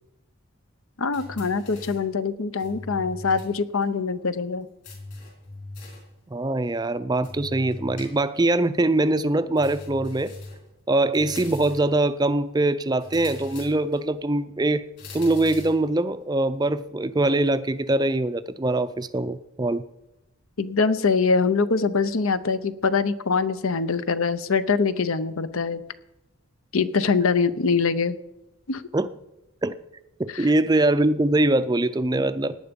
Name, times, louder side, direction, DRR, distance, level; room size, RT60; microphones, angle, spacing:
voice 1, 1.0-4.7 20.6-25.8 26.7-28.1 28.7-28.8 30.3-30.5, left 4 dB, 70° left, 14 dB, 0.7 m, -23 dB
sound 1, 1.1-2.1 2.6-3.6 3.8-3.9 4.8-6.1 7.2-8.5 9.6-10.7 11.1-11.9 13.0-14.0 15.0-15.8, left 2 dB, 50° left, 4.7 m, -40 dB
voice 2, 6.3-10.3 10.9-14.9 15.1-19.8 28.9-29.1 29.6-29.8 30.2-32.5, right 2 dB, 20° right, 13 dB, 0.4 m, -23 dB
17.5 x 9.9 x 5.3 m, 0.93 s
head